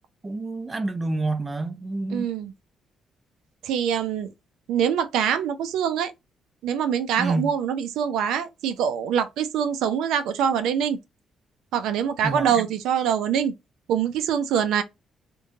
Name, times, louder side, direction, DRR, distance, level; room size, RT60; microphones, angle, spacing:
voice 1, 0.2-2.3 7.2-7.5 12.2-12.7, right 2 dB, 25° right, 0.6 m, -28 dB
voice 2, 2.1-2.5 3.6-4.3 4.7-6.1 6.6-11.0 11.7-13.5 13.9-14.8, right 8 dB, 85° right, 0.4 m, -24 dB
2.8 x 2.2 x 2.5 m
cardioid pair, 90°, 0 cm